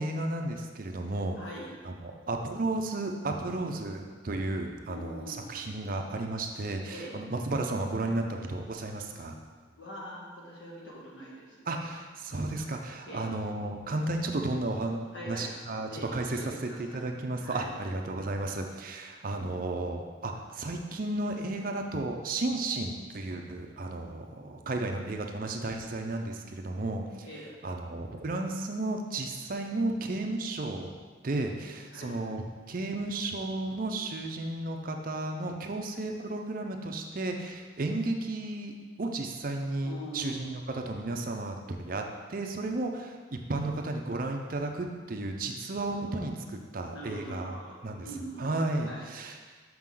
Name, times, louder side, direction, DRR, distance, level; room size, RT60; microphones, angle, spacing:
voice 1, 0.0-1.4 1.8-9.4 11.7-15.0 15.3-16.4 16.8-27.0 27.6-30.9 31.2-42.0 42.3-47.6 47.8-48.1 48.4-49.3, right 2 dB, 45° right, 3 dB, 0.5 m, -33 dB
voice 2, 1.4-1.7 4.9-5.7 6.9-7.2 9.7-11.8 13.0-13.3 15.1-15.5 15.9-17.0 17.4-17.7 27.2-27.5 31.9-32.2 39.8-40.6 46.9-48.5 48.9-49.1, equal, 70° left, -5 dB, 1.7 m, -43 dB
6.0 x 6.0 x 3.8 m, 1.5 s
head